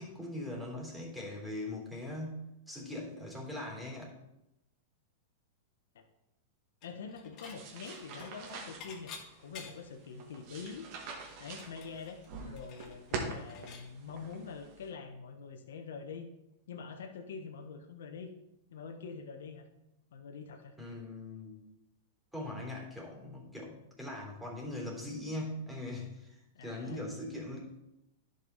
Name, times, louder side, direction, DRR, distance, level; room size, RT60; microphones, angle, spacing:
voice 1, 0.0-4.1 20.8-21.6 22.3-27.6, left 1 dB, 5° right, -3 dB, 3.4 m, -41 dB
voice 2, 6.8-10.9 11.4-16.3 16.7-18.3 18.7-19.7 20.1-20.8 26.5-27.0, left 5 dB, 75° left, 5 dB, 1.0 m, -45 dB
Dishes pots and pans / Chink clink, 6.8-7.6 7.9-10.0 10.4-10.5 10.8-13.9, left 6 dB, 45° left, 1.7 m, -51 dB
sound 1, 7.4-14.9, right 4 dB, 50° right, 2.0 m, -45 dB
11.0 x 5.4 x 4.1 m, 0.88 s
hypercardioid pair, 115°, 0 cm